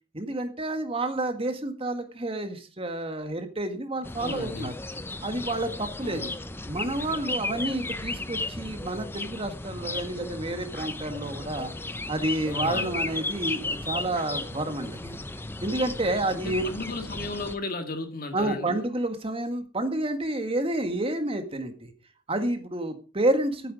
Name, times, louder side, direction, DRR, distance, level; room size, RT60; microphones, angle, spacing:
voice 1, 0.1-4.7 5.2-6.3 6.7-11.7 12.1-15.2 15.6-16.6 18.3-21.9 22.3-23.7, right 1 dB, 30° right, 1.7 m, -29 dB
sound 1, 4.0-17.6, left 2 dB, 10° left, 0.7 m, -35 dB
voice 2, 4.2-4.7 6.0-6.3 12.5-12.9 16.3-18.9, left 2 dB, 50° left, 1.9 m, -35 dB
13.5 x 9.2 x 4.9 m
head